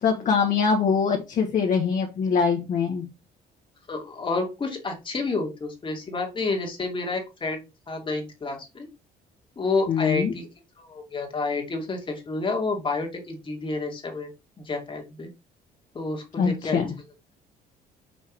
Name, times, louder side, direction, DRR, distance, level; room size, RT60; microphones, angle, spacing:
voice 1, 0.0-3.1 9.9-10.3 16.4-16.8, left 6 dB, 50° left, 1.5 m, -23 dB
voice 2, 3.9-8.9 9.6-10.5 10.8-14.3 14.6-15.3 15.9-16.8, left 3 dB, 30° left, 2.4 m, -29 dB
5.8 x 5.5 x 3.1 m
cardioid pair, 110°, 17 cm